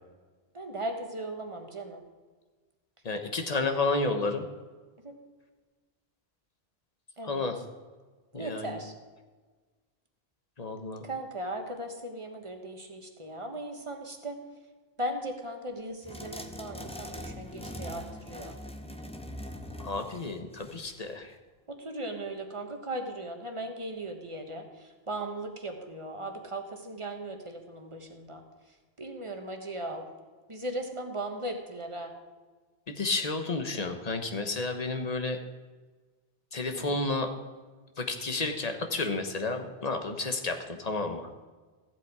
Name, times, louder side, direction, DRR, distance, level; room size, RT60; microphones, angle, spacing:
voice 1, 0.5-2.0 5.0-5.2 7.2-7.5 8.3-8.9 11.0-14.4 15.0-18.6 21.7-28.4 29.0-30.1 30.5-32.1 36.7-37.0, right 1 dB, 30° right, 4 dB, 1.3 m, -37 dB
voice 2, 3.0-4.5 7.2-7.6 8.3-8.8 10.6-11.0 19.8-21.3 32.9-35.4 36.5-37.3 38.0-41.3, left 3 dB, 40° left, 5 dB, 1.1 m, -31 dB
sound 1, 16.0-21.1, equal, 5° left, 0.7 m, -42 dB
14.5 x 7.7 x 4.8 m, 1.4 s
omnidirectional pair, 1.1 m